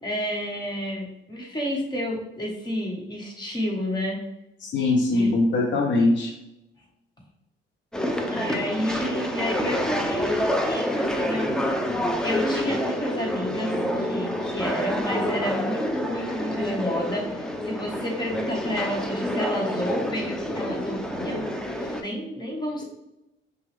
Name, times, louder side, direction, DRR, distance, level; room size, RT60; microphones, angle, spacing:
voice 1, 0.0-4.2 5.1-5.3 8.2-11.5 12.2-22.8, equal, 20° left, -1 dB, 1.5 m, -30 dB
voice 2, 4.6-6.4, left 2 dB, 65° left, 1 dB, 0.7 m, -21 dB
sound 1, 7.9-22.0, equal, 5° left, 0.6 m, -28 dB
5.8 x 2.4 x 3.4 m, 0.88 s
cardioid pair, 90°, 20 cm